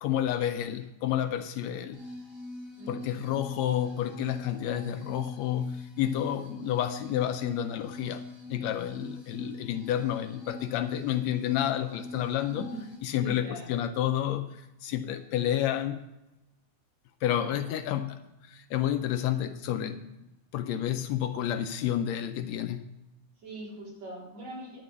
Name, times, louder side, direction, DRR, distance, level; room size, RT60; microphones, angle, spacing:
voice 1, 0.0-2.0 2.9-8.2 8.5-12.7 13.0-16.0 17.2-20.0 20.5-22.9, left 11 dB, 75° left, 1.8 m, -30 dB
sound 1, 1.9-13.0, left 1 dB, ahead, 3.7 m, -43 dB
voice 2, 2.8-3.3 12.5-12.9 13.2-13.7 17.3-17.8 23.4-24.8, right 1 dB, 65° right, 4.9 m, -42 dB
10.5 x 6.5 x 7.7 m
omnidirectional pair, 3.3 m